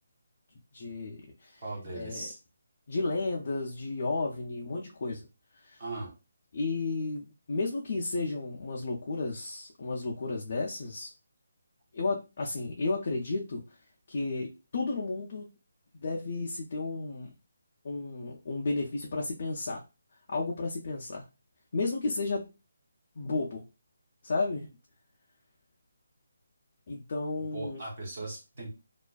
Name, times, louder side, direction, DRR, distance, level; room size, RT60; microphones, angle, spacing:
voice 1, 0.7-1.6 1.9-2.2 2.9-5.3 5.5-5.8 6.5-11.1 11.9-13.8 14.1-15.5 16.0-17.3 17.8-19.8 20.3-21.3 21.7-22.5 23.2-23.6 24.2-24.7 26.9-27.8, left 3 dB, 40° left, -1 dB, 0.4 m, -33 dB
voice 2, 1.6-2.4 5.8-6.1 27.5-28.7, right 2 dB, 30° right, -2 dB, 0.9 m, -38 dB
2.4 x 2.4 x 2.2 m, 0.29 s
hypercardioid pair, 175°, 0 cm